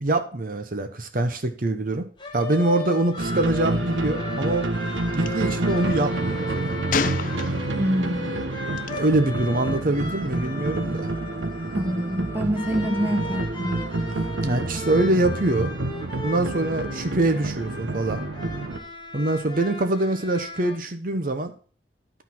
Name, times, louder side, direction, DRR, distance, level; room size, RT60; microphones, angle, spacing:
voice 1, 0.0-2.1 2.3-4.7 5.2-6.8 8.9-11.1 14.4-15.7 16.2-18.2 19.1-21.5, right 2 dB, 50° right, 8 dB, 0.9 m, -24 dB
sound 1, 2.2-20.8, left 2 dB, 25° left, 1.3 m, -37 dB
sound 2, 3.2-18.8, right 2 dB, 90° right, 1.0 m, -29 dB
Gunshot gunfire, 5.1-5.3 6.9-7.9 8.8-9.0, left 5 dB, 45° left, 0.5 m, -28 dB
voice 2, 7.7-8.3 11.7-13.8, equal, 10° right, 4 dB, 0.9 m, -26 dB
11.5 x 4.0 x 5.9 m, 0.42 s
head